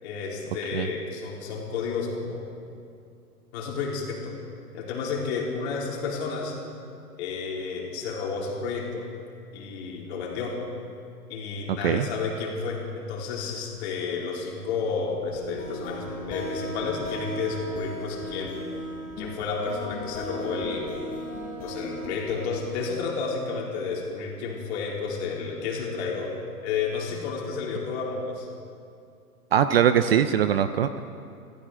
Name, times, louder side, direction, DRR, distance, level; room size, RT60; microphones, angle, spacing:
voice 1, 0.0-2.5 3.5-4.4 4.7-6.6 7.2-9.1 9.5-10.6 11.3-18.6 19.2-20.9 21.6-26.3 26.6-28.5, left 5 dB, 45° left, -2 dB, 4.0 m, -31 dB
sound 1, 15.3-22.9, left 1 dB, 20° left, 3.2 m, -36 dB
voice 2, 29.5-31.0, right 9 dB, 40° right, 11 dB, 0.5 m, -21 dB
25.5 x 15.0 x 3.7 m, 2.4 s
hypercardioid pair, 135°, 46 cm